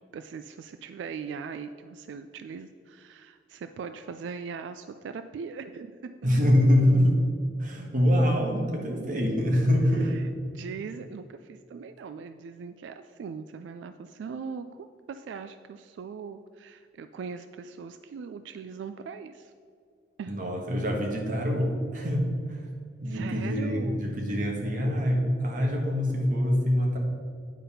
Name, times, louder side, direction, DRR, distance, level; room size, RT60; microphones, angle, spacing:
voice 1, 0.1-6.3 9.9-19.5 20.2-20.3 23.0-24.0, right 5 dB, 90° right, 10 dB, 0.3 m, -40 dB
voice 2, 6.2-7.2 7.6-10.2 20.3-22.6 23.0-27.0, equal, 50° right, 1 dB, 1.3 m, -24 dB
9.3 x 4.0 x 5.5 m, 2.2 s
head